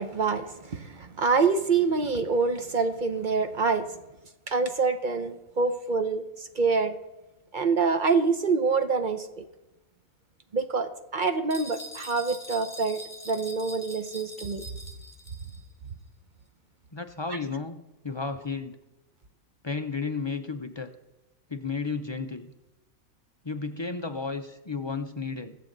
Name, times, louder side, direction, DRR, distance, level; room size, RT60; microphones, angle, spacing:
voice 1, 0.0-3.9 4.5-6.2 6.5-7.0 7.5-9.4 10.5-14.6 17.3-17.4, right 4 dB, 45° right, 0.7 m, -26 dB
sound 1, 11.5-15.6, equal, 10° left, 1.1 m, -43 dB
voice 2, 16.9-18.8 19.6-20.9 21.5-22.5 23.4-25.6, left 4 dB, 40° left, 0.4 m, -33 dB
22.0 x 7.6 x 3.9 m
omnidirectional pair, 1.4 m